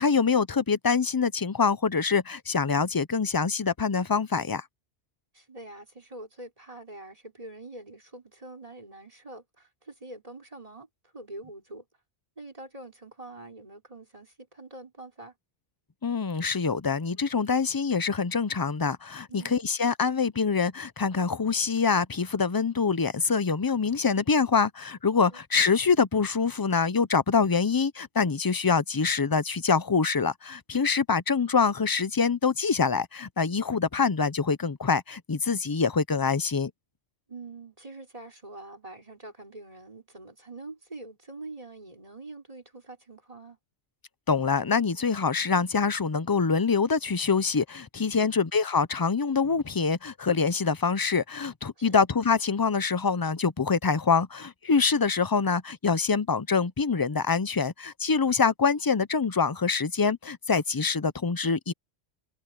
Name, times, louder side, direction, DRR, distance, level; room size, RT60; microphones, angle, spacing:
voice 1, 0.0-4.6 16.0-36.7 44.3-61.7, left 5 dB, 30° left, 0.4 m, -25 dB
voice 2, 5.3-10.9 11.1-11.9 12.4-15.3 19.3-19.6 25.3-25.4 37.3-43.6 48.2-48.3 51.8-51.9, right 2 dB, 30° right, 4.4 m, -45 dB
omnidirectional pair, 1.1 m